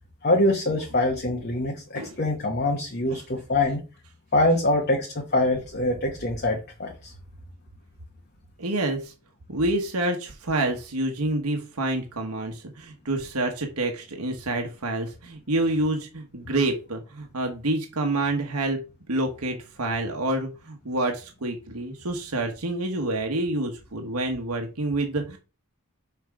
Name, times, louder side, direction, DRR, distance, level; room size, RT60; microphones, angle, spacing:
voice 1, 0.2-3.8 4.3-7.1, left 1 dB, 45° left, 1 dB, 1.1 m, -24 dB
voice 2, 8.6-9.1 9.5-18.8 19.1-25.4, right 2 dB, 90° right, 3 dB, 1.2 m, -28 dB
6.0 x 4.5 x 4.8 m, 0.32 s
head